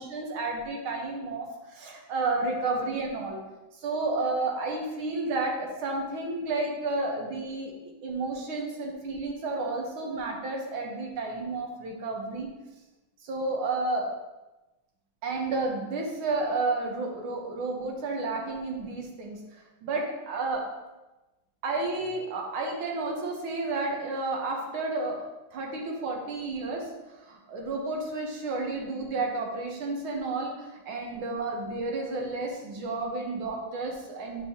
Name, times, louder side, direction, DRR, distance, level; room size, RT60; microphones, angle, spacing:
voice 1, 0.0-3.4 3.8-7.7 8.0-12.5 13.3-14.1 15.2-19.4 19.8-20.7 21.6-34.5, right 3 dB, 75° right, 1 dB, 1.9 m, -31 dB
8.1 x 5.2 x 2.8 m, 1.1 s
omnidirectional pair, 2.3 m